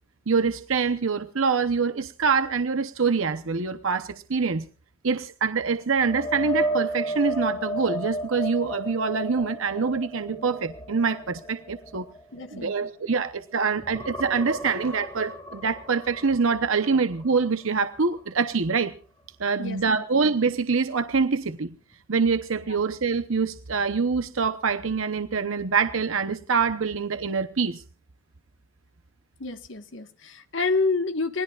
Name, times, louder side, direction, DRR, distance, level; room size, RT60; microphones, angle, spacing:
voice 1, 0.3-4.7 5.0-12.1 12.5-18.9 19.4-21.7 22.1-27.8, right 5 dB, 75° right, 0.9 m, -25 dB
sound 1, 6.0-13.4 13.7-17.6 18.0-18.2 21.5-21.6, equal, 15° left, 2.1 m, -33 dB
voice 2, 12.3-12.9 19.6-20.0 29.4-31.4, left 3 dB, 65° left, 1.5 m, -28 dB
27.0 x 19.5 x 2.4 m
head